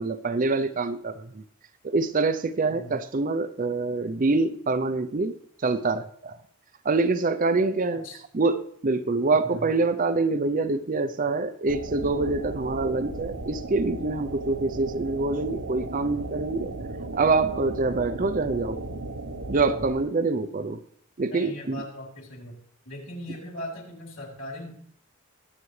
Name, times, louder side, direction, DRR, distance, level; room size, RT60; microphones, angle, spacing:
voice 1, 0.0-1.4 1.8-5.4 5.6-6.4 6.8-8.0 8.3-16.7 17.1-18.8 19.5-20.8 21.2-21.8, right 3 dB, 35° right, 11 dB, 0.5 m, -25 dB
sound 1, 11.7-20.0, right 2 dB, 80° right, 1.0 m, -36 dB
voice 2, 21.3-22.6 22.8-24.7, left 1 dB, 55° left, -1 dB, 3.9 m, -39 dB
22.0 x 8.2 x 3.2 m, 0.64 s
head